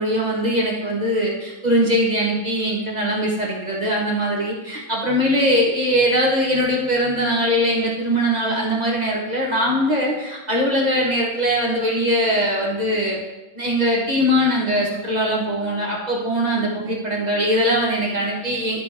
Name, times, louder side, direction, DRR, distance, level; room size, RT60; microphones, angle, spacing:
voice 1, 0.0-13.2 13.5-18.8, equal, 25° right, -3 dB, 1.3 m, -21 dB
11.5 x 4.1 x 4.9 m, 1.0 s
omnidirectional pair, 2.0 m